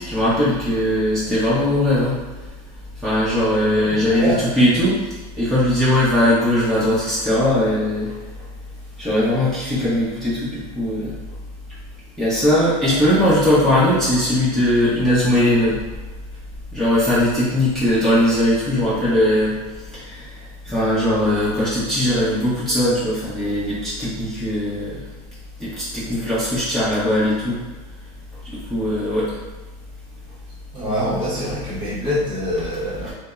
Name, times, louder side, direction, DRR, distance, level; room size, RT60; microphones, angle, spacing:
voice 1, 0.0-2.2 3.0-5.0 5.4-8.1 9.0-11.1 12.2-15.8 16.7-19.5 20.1-20.2 20.7-25.0 25.6-27.6 28.7-29.3, left 1 dB, ahead, -12 dB, 0.8 m, -19 dB
voice 2, 3.8-4.4 12.9-13.2 30.7-33.1, equal, 25° right, -8 dB, 0.9 m, -25 dB
2.7 x 2.0 x 2.3 m, 1.2 s
supercardioid pair, 120°, 20 cm